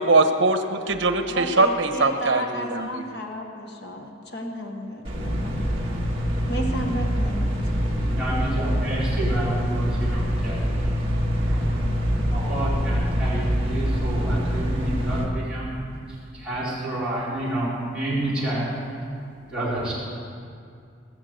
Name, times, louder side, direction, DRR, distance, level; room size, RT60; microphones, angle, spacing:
voice 1, 0.0-3.0, right 3 dB, 70° right, 7 dB, 1.0 m, -21 dB
voice 2, 1.2-5.6 6.5-7.5, right 1 dB, 55° left, 2 dB, 1.4 m, -32 dB
sound 1, 5.0-15.2, equal, 30° right, 1.9 m, -25 dB
voice 3, 8.0-10.8 11.4-11.7 12.3-15.7 16.3-18.9 19.5-19.9, right 1 dB, 5° right, -10 dB, 4.4 m, -29 dB
19.0 x 7.3 x 8.0 m, 2.3 s
head